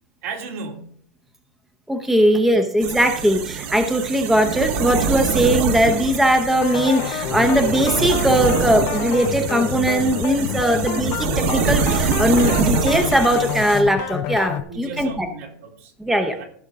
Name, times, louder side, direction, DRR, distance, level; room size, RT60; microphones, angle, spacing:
voice 1, 0.2-0.9 10.7-10.8 14.7-16.4, right 4 dB, 70° right, 0 dB, 3.3 m, -35 dB
voice 2, 1.9-15.3 16.0-16.4, equal, 5° right, 6 dB, 0.8 m, -19 dB
sound 1, 2.8-13.8, right 6 dB, 55° right, 1.5 m, -25 dB
sound 2, 6.6-14.6, left 12 dB, 40° left, 0.6 m, -28 dB
15.5 x 6.6 x 3.6 m, 0.62 s
supercardioid pair, 160°, 8 cm